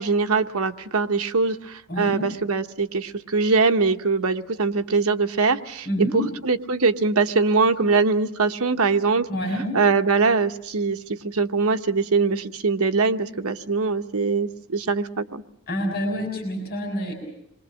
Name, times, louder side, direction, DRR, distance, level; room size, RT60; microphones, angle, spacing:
voice 1, 0.0-5.9 6.1-9.3 9.7-15.4, right 4 dB, 85° right, 6 dB, 1.1 m, -22 dB
voice 2, 1.9-2.3 5.8-6.3 9.3-9.7 15.7-17.1, equal, 45° left, 2 dB, 6.4 m, -27 dB
27.5 x 22.0 x 6.3 m, 0.76 s
head